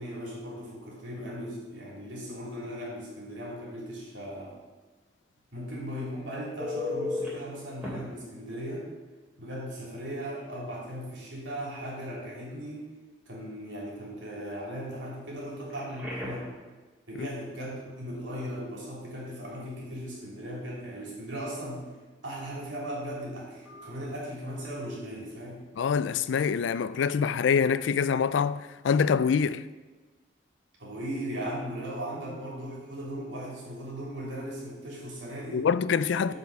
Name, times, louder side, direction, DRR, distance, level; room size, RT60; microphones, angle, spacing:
voice 1, 0.0-4.6 5.5-8.9 9.4-12.9 13.3-16.5 17.1-21.8 22.2-25.6 30.8-35.7 36.1-36.3, equal, 85° right, 3.1 m, -37 dB
Telephone, 6.6-7.3 7.8-7.9 9.7-9.8 10.2-10.4 15.7-16.5 23.7-23.9, left 3 dB, 5° right, 2.7 m, -34 dB
voice 2, 25.8-29.6 35.5-36.3, left 6 dB, 85° left, 0.3 m, -25 dB
8.0 x 5.2 x 6.3 m
head